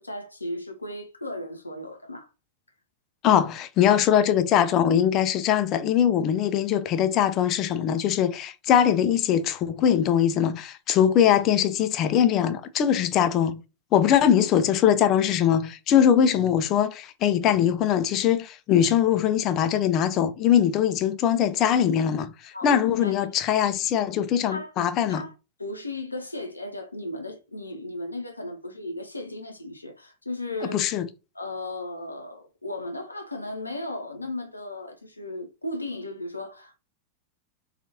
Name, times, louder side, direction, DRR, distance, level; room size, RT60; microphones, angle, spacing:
voice 1, 0.0-2.3 22.5-23.3 24.5-24.7 25.1-25.3 25.6-30.8 31.3-36.8, left 1 dB, 85° left, 0.6 m, -35 dB
voice 2, 3.2-13.6 13.9-25.2 30.7-31.1, left 9 dB, 35° left, 0.4 m, -22 dB
2.8 x 2.3 x 2.8 m
figure-of-eight pair, 90°, 0 cm